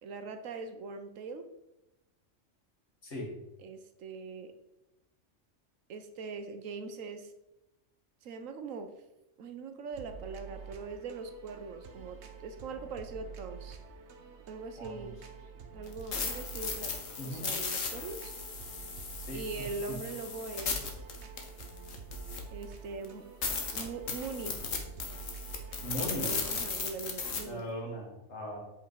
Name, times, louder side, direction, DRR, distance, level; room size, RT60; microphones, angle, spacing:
voice 1, 0.0-1.5 3.6-4.6 5.9-7.3 8.2-9.0 9.4-13.8 14.5-15.2 15.7-18.3 19.3-21.0 22.5-23.3 23.7-24.6 26.0-27.7, right 4 dB, 90° right, 8 dB, 1.2 m, -41 dB
voice 2, 3.0-3.4 14.8-15.1 17.2-17.5 19.2-20.0 25.8-26.3 27.4-28.6, equal, 60° left, -2 dB, 2.3 m, -39 dB
sound 1, 9.9-26.8, right 6 dB, 65° right, 1.1 m, -48 dB
sound 2, 15.9-22.6 23.0-23.1 23.4-27.4, left 5 dB, 80° left, 1.5 m, -36 dB
8.1 x 5.0 x 4.7 m, 0.92 s
omnidirectional pair, 1.3 m